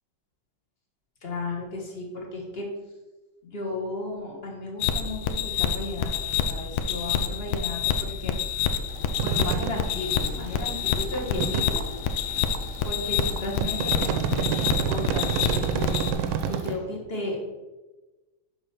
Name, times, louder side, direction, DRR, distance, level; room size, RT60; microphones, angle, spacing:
voice 1, 1.2-2.7 3.4-8.8 9.2-11.8 12.8-17.4, left 2 dB, 30° left, -2 dB, 1.6 m, -34 dB
sound 1, 4.8-16.1, left 7 dB, 75° left, 1.4 m, -28 dB
sound 2, 8.8-16.7, right 3 dB, 50° right, 0.9 m, -46 dB
sound 3, 9.2-9.7 10.2-10.3 11.1-11.8 12.5-12.6 13.2-16.7, right 8 dB, 85° right, 1.4 m, -27 dB
6.9 x 4.0 x 5.8 m, 1.2 s
omnidirectional pair, 2.3 m